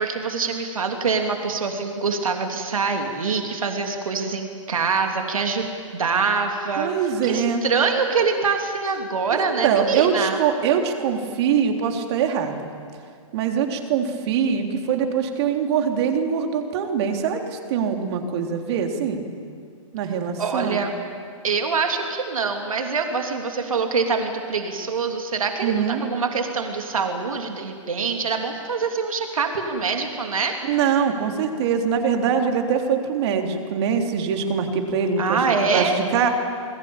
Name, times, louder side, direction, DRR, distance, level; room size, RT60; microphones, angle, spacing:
voice 1, 0.0-5.7 5.9-6.9 7.2-10.4 20.4-20.9 21.4-30.5 35.2-36.0, right 5 dB, 80° right, 4 dB, 3.1 m, -24 dB
voice 2, 6.8-7.6 9.3-12.7 13.3-19.2 19.9-20.8 25.6-26.0 30.6-36.3, right 7 dB, 50° right, 4 dB, 3.6 m, -23 dB
28.5 x 20.5 x 8.7 m, 2.3 s
hypercardioid pair, 125°, 17 cm